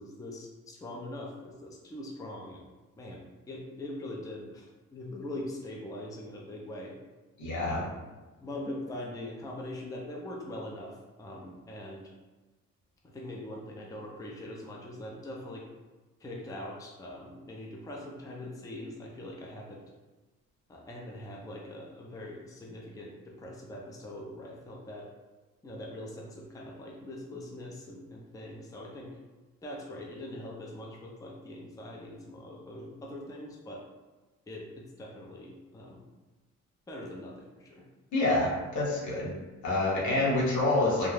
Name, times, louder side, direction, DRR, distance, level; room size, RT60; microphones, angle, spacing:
voice 1, 0.0-2.7 3.0-6.9 7.6-8.0 8.4-12.1 13.0-15.6 16.2-19.8 20.7-25.0 25.6-29.1 29.6-33.8 34.5-36.1 36.9-37.8, left 1 dB, 10° left, -2 dB, 0.4 m, -42 dB
voice 2, 7.4-7.8 38.1-39.3 39.6-41.1, left 2 dB, 75° left, -4 dB, 1.0 m, -27 dB
2.4 x 2.1 x 3.2 m, 1.2 s
cardioid pair, 90°, 30 cm